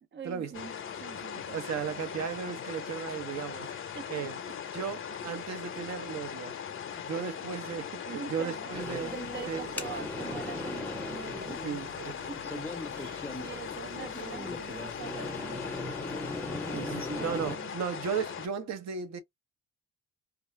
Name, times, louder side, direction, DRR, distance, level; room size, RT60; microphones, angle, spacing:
voice 1, 0.1-0.7 1.0-1.9 3.1-3.3 3.9-4.3 8.1-11.6 12.0-12.6 12.9-15.8 16.7-16.9 17.2-17.8, right 7 dB, 40° right, 0.5 m, -44 dB
sound 1, 0.5-18.5, left 8 dB, 45° left, 0.6 m, -40 dB
voice 2, 1.5-3.7 4.1-4.4 4.7-6.5 7.0-9.1 9.5-9.7 11.6-12.1 16.7-19.2, right 7 dB, 60° right, 0.9 m, -35 dB
sound 2, 8.7-17.6, left 1 dB, 5° left, 0.6 m, -39 dB
2.4 x 2.3 x 3.1 m
cardioid pair, 90°, 30 cm